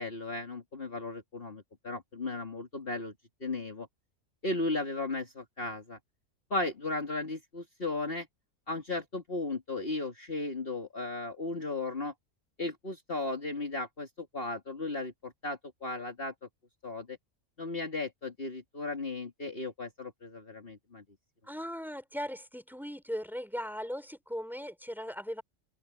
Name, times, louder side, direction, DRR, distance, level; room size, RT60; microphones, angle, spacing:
voice 1, 0.0-3.1 3.4-3.9 4.4-6.0 6.5-8.3 8.7-12.1 12.6-16.3 16.8-17.2 17.6-21.0, left 2 dB, 40° left, 2.6 m, -35 dB
voice 2, 21.5-25.4, equal, ahead, 5.4 m, -38 dB
open air
omnidirectional pair, 1.5 m